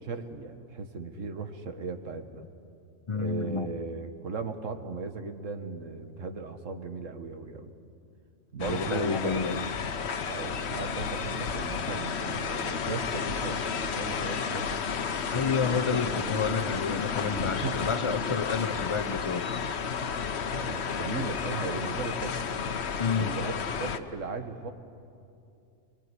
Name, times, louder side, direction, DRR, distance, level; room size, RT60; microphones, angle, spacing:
voice 1, 0.0-2.4 3.1-7.7 8.5-9.6 10.3-14.8 15.7-17.0 17.5-17.8 20.5-22.3 23.1-24.7, right 4 dB, 75° right, 1.8 m, -37 dB
voice 2, 3.1-3.7 8.6-9.6 15.3-19.5 23.0-23.4, left 5 dB, 35° left, 0.5 m, -29 dB
sound 1, 8.6-24.0, left 6 dB, 60° left, 1.2 m, -32 dB
25.5 x 22.0 x 9.9 m
omnidirectional pair, 1.3 m